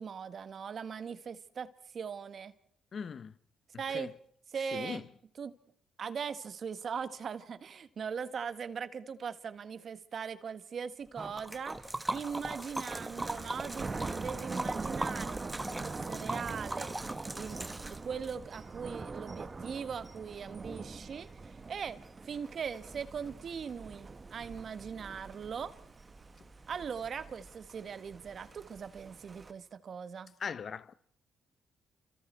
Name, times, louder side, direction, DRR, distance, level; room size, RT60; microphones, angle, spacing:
voice 1, 0.0-2.5 3.8-4.1 4.5-5.1 5.4-5.5 6.0-11.9 12.1-16.9 17.3-17.6 17.9-25.7 26.7-30.3, right 6 dB, 55° right, 1.6 m, -40 dB
voice 2, 2.9-3.3 3.9-4.1 4.7-5.0 30.4-30.9, left 6 dB, 50° left, 1.0 m, -39 dB
Liquid, 11.2-18.3, right 1 dB, 15° right, 1.4 m, -39 dB
Thunder, 11.7-29.5, right 3 dB, 30° right, 1.8 m, -44 dB
29.0 x 26.0 x 4.6 m
cardioid pair, 75°, 0 cm